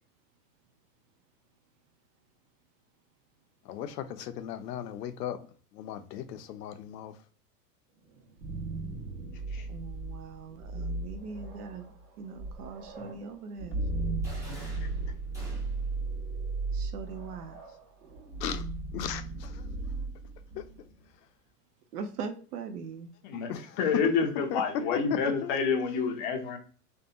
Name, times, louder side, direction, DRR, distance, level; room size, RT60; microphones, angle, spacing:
voice 1, 3.7-5.5 5.7-7.2 18.4-18.6 18.9-19.6 20.6-20.7 23.5-25.8, left 9 dB, 80° left, 0.6 m, -36 dB
sound 1, 8.1-21.0, right 3 dB, 35° right, 1.0 m, -36 dB
voice 2, 9.7-13.8 16.7-17.6 21.9-23.1, right 5 dB, 70° right, 0.7 m, -41 dB
sound 2, 14.2-16.0, right 1 dB, 5° right, 0.7 m, -48 dB
voice 3, 23.8-26.6, left 5 dB, 35° left, 0.5 m, -28 dB
2.7 x 2.1 x 2.4 m
hypercardioid pair, 135°, 48 cm